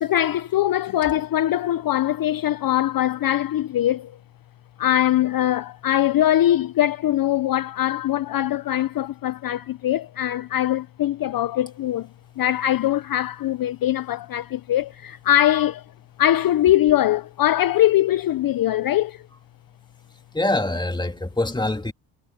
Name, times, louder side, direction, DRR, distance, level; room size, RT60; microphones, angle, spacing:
voice 1, 0.0-4.1 4.8-12.1 12.4-15.8 16.2-19.2, left 12 dB, 45° left, 0.7 m, -22 dB
voice 2, 20.3-21.9, left 2 dB, 10° left, 2.7 m, -24 dB
supercardioid pair, 80°, 49 cm